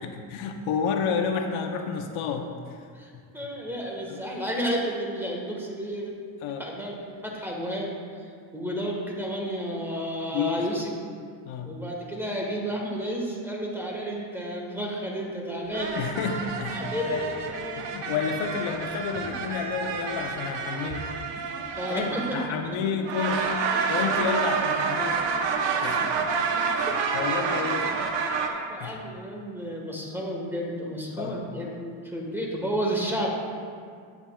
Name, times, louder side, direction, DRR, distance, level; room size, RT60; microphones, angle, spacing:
voice 1, 0.0-3.0 4.1-4.2 6.4-6.6 10.3-10.7 11.4-11.7 16.0-17.3 17.8-21.1 21.9-23.5 23.9-25.2 25.8-26.3 26.7-28.2 28.8-29.0 31.2-31.4, left 6 dB, 85° left, 5 dB, 0.8 m, -30 dB
voice 2, 2.9-6.1 6.6-7.9 8.5-10.9 11.6-16.0 16.7-17.8 21.8-22.4 26.9-27.0 27.3-27.6 28.5-33.3, equal, 5° right, -2 dB, 1.4 m, -32 dB
sound 1, 15.7-22.7 23.0-28.5, right 5 dB, 65° right, 0.9 m, -29 dB
10.5 x 8.6 x 2.3 m, 2.2 s
cardioid pair, 125°, 47 cm